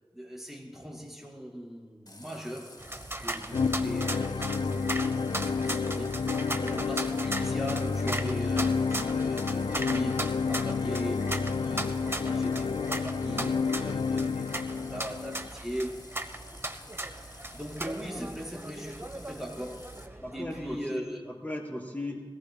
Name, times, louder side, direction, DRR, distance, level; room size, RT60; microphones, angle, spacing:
voice 1, 0.1-2.8 3.2-16.0 16.9-21.2, equal, 5° right, -2 dB, 4.6 m, -40 dB
Water tap faucet, 2.1-20.1, left 2 dB, 45° left, 1.1 m, -51 dB
sound 1, 2.8-20.7, right 1 dB, 25° right, 1.0 m, -38 dB
sound 2, 3.5-15.5, left 5 dB, 80° left, 0.4 m, -30 dB
voice 2, 20.2-22.2, left 1 dB, 20° left, -1 dB, 4.2 m, -37 dB
23.0 x 17.5 x 2.3 m, 1.5 s
wide cardioid pair, 40°, 9 cm